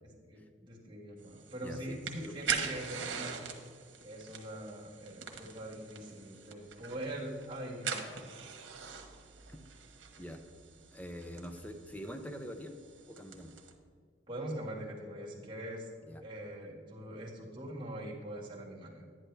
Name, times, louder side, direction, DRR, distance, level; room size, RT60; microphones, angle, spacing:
voice 1, 0.2-3.4 4.0-8.2 14.3-15.9 16.2-19.1, right 1 dB, 25° right, -4 dB, 1.7 m, -42 dB
sound 1, 1.2-13.7, right 6 dB, 80° right, 1.2 m, -43 dB
voice 2, 1.6-2.3 10.2-10.4 10.9-12.8 13.1-13.5 16.0-16.2, equal, 10° left, 7 dB, 0.5 m, -44 dB
11.0 x 9.9 x 3.3 m, 2.1 s
head